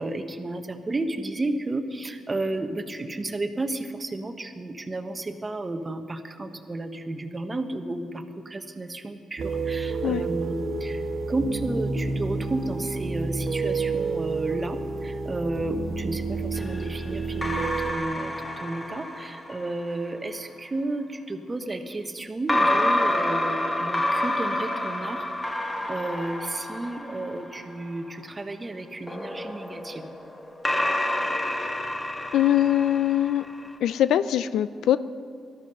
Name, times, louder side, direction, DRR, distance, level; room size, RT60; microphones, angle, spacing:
voice 1, 0.0-11.0 11.3-25.3 25.9-30.1, right 2 dB, 25° right, 7 dB, 1.2 m, -32 dB
sound 1, 9.4-17.9, right 4 dB, 55° right, 1.6 m, -30 dB
sound 2, 16.6-20.0 22.5-27.9 29.1-33.7, left 1 dB, 20° left, 1.4 m, -28 dB
voice 2, 32.3-33.5 33.8-35.0, left 11 dB, 85° left, 14 dB, 0.4 m, -22 dB
18.0 x 13.0 x 5.4 m, 2.3 s
cardioid pair, 95°, 0 cm